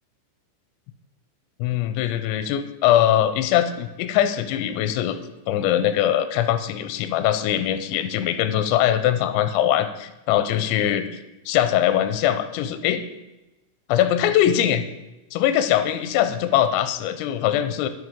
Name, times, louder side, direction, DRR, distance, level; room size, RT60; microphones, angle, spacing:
voice 1, 1.6-5.2 5.5-11.1 11.5-13.0 13.9-14.9 15.3-17.9, left 11 dB, 85° left, 9 dB, 2.9 m, -21 dB
9.6 x 8.3 x 3.6 m, 1.0 s
omnidirectional pair, 5.3 m